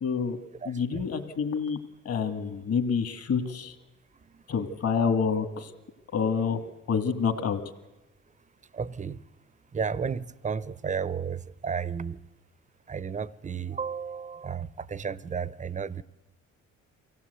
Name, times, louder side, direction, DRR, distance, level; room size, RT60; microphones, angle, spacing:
voice 1, 0.0-0.4 0.7-1.8 2.1-3.8 4.5-5.7 6.1-6.6 6.9-7.6, left 6 dB, 55° left, 1.9 m, -27 dB
voice 2, 0.6-1.1 4.2-4.5 8.7-9.2 9.7-12.2 12.9-16.0, right 6 dB, 25° right, 0.6 m, -33 dB
23.5 x 16.5 x 8.1 m
cardioid pair, 90°, 30 cm